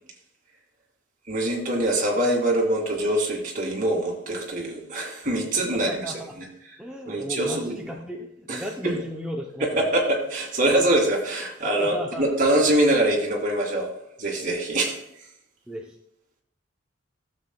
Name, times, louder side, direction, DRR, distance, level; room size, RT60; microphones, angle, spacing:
voice 1, 1.3-6.5 7.1-7.7 8.5-8.9 9.6-13.9 14.2-15.0, right 1 dB, 45° right, -1 dB, 2.3 m, -24 dB
voice 2, 5.7-6.3 6.8-9.9 11.8-12.3 15.7-16.0, equal, 5° right, -1 dB, 0.6 m, -35 dB
15.0 x 7.5 x 2.3 m, 0.78 s
head